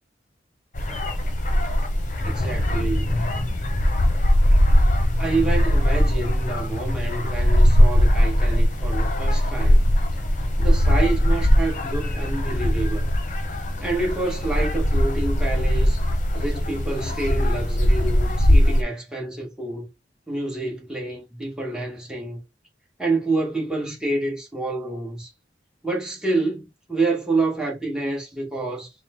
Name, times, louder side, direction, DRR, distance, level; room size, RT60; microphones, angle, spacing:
sound 1, 0.7-18.8, equal, 45° left, 0.9 m, -20 dB
voice 1, 2.2-3.2 5.2-9.8 10.6-13.1 13.8-16.0 16.3-19.9 20.3-22.4 23.0-25.3 25.8-28.9, right 3 dB, 5° right, 1.5 m, -28 dB
4.5 x 2.2 x 3.8 m
head